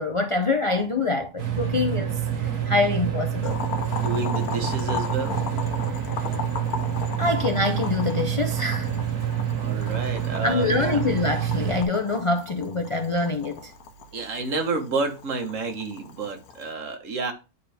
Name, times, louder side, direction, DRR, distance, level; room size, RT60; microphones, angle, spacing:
voice 1, 0.0-3.6 7.2-9.0 9.3-9.5 10.4-13.7, left 3 dB, 50° left, 0.3 m, -25 dB
sound 1, 1.4-11.8, right 9 dB, 85° right, 1.9 m, -27 dB
Boiling, 3.4-16.7, left 5 dB, 75° left, 1.4 m, -37 dB
voice 2, 3.9-5.4 9.6-11.0 14.1-17.3, right 3 dB, 60° right, 1.5 m, -30 dB
9.6 x 4.5 x 3.4 m
omnidirectional pair, 1.6 m